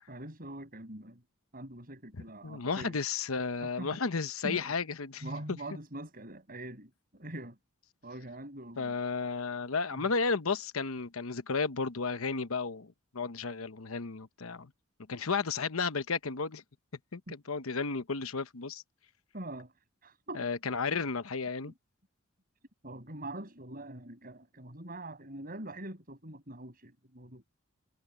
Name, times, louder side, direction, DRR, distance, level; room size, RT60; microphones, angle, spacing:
voice 1, 0.1-1.2 1.5-3.0 3.6-3.9 4.4-4.7 5.2-7.6 8.0-9.0 9.9-10.1 17.3-17.4 19.3-19.7 20.0-20.4 22.8-27.5, right 1 dB, 45° right, 6.7 m, -43 dB
voice 2, 2.4-5.6 8.8-14.7 15.1-16.6 17.1-18.8 20.3-21.7, left 4 dB, 80° left, 1.0 m, -33 dB
head